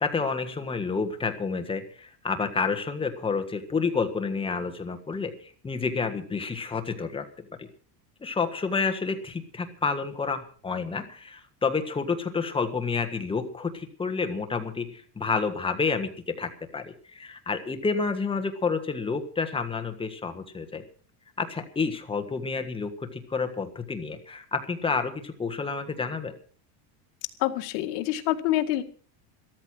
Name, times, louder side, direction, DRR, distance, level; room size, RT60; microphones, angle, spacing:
voice 1, 0.0-7.3 7.6-7.7 8.2-20.8 21.4-26.4, left 4 dB, 10° left, 6 dB, 1.4 m, -29 dB
voice 2, 27.4-28.8, left 14 dB, 70° left, 6 dB, 2.0 m, -26 dB
13.5 x 13.0 x 6.1 m, 0.43 s
cardioid pair, 165°, 48 cm